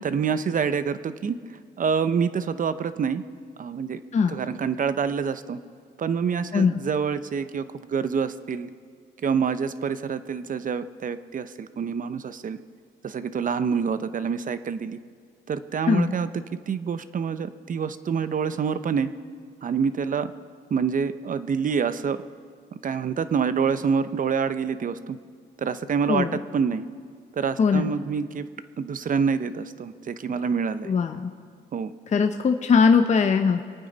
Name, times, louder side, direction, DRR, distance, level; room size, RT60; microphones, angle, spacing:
voice 1, 0.0-1.4 1.8-3.2 3.6-4.0 4.3-5.6 6.0-8.7 9.2-12.6 13.0-15.0 15.5-19.1 19.6-20.3 20.7-22.2 22.8-25.2 25.6-26.8 27.3-28.5 28.8-30.9 31.7-31.9, right 6 dB, 40° right, 13 dB, 0.7 m, -26 dB
voice 2, 26.1-26.4 27.6-27.9 30.8-31.3 32.1-33.6, left 5 dB, 35° left, 5 dB, 0.7 m, -20 dB
25.0 x 9.2 x 4.0 m, 2.1 s
cardioid pair, 90°, 20 cm